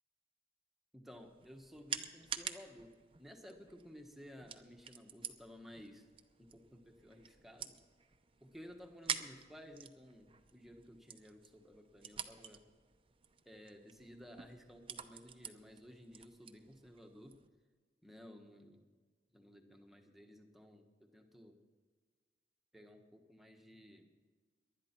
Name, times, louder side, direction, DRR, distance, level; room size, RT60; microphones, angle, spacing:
voice 1, 0.9-6.1 6.4-7.8 8.4-12.6 13.4-17.4 18.0-18.9 19.3-21.6 22.7-24.0, equal, ahead, 3 dB, 1.3 m, -55 dB
sound 1, 1.1-17.5, right 7 dB, 30° right, 0.7 m, -48 dB
19.5 x 11.5 x 4.5 m, 1.5 s
head